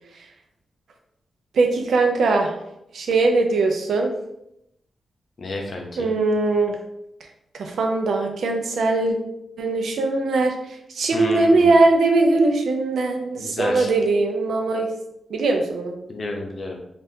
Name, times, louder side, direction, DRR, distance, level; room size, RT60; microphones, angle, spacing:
voice 1, 1.5-2.5 2.9-4.1 6.0-6.8 7.5-9.2 9.6-10.5 10.9-14.9 15.3-15.9, right 3 dB, 80° right, 3 dB, 0.5 m, -20 dB
voice 2, 5.4-6.1 11.1-11.7 13.4-13.9 16.1-16.8, left 2 dB, 60° left, 1 dB, 0.7 m, -30 dB
3.5 x 2.5 x 2.7 m, 0.81 s
supercardioid pair, 45°, 0 cm